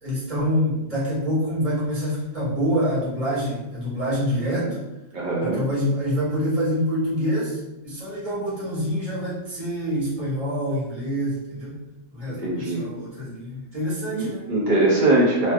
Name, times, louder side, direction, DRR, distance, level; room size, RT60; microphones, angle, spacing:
voice 1, 0.0-4.7 5.4-7.6 7.8-11.8 12.1-14.4, equal, 25° right, -8 dB, 1.2 m, -26 dB
voice 2, 5.1-5.6 12.3-12.8 14.1-15.5, right 2 dB, 60° right, -5 dB, 0.5 m, -22 dB
3.2 x 2.6 x 2.3 m, 0.95 s
omnidirectional pair, 1.4 m